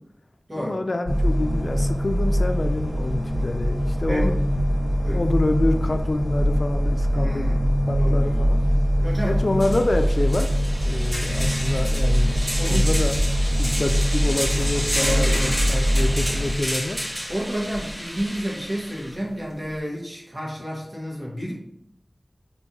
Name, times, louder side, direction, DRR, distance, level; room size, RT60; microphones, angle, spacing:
voice 1, 0.6-4.4 5.1-7.6 7.9-8.6 9.2-10.5 10.8-13.1 13.6-17.0, left 2 dB, 60° left, 6 dB, 0.4 m, -26 dB
sound 1, 1.1-16.5, equal, 15° left, 1.1 m, -22 dB
voice 2, 7.1-7.6 7.9-8.3 9.0-9.6 12.6-12.9 15.0-15.5 17.3-21.5, equal, 40° right, -4 dB, 1.4 m, -30 dB
sound 2, 9.1-9.2 9.5-19.1, equal, 10° right, 1.4 m, -30 dB
4.5 x 3.3 x 2.7 m, 0.75 s
wide cardioid pair, 65°, 0 cm